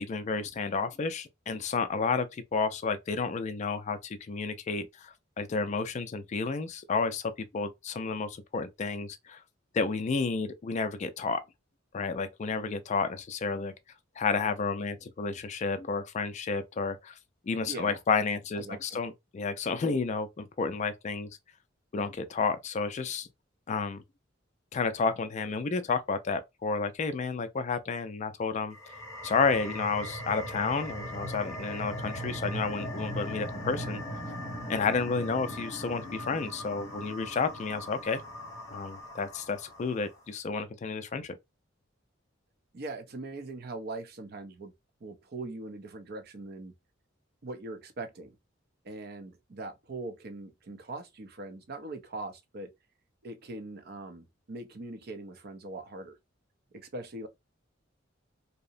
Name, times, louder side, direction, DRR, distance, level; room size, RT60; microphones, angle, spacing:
voice 1, 0.0-9.4 9.7-11.4 11.9-13.7 14.2-17.2 17.5-21.3 21.9-23.3 23.7-24.0 24.7-28.8 29.2-34.2 34.7-38.2 38.7-41.4, left 4 dB, 35° left, 0.3 m, -31 dB
voice 2, 18.6-19.0 42.7-44.7 45.0-46.7 47.4-48.4 48.8-52.7 53.2-56.2 56.7-57.3, right 2 dB, 55° right, 0.6 m, -41 dB
sound 1, 28.7-39.9, equal, 15° left, 0.7 m, -39 dB
2.8 x 2.0 x 2.4 m
head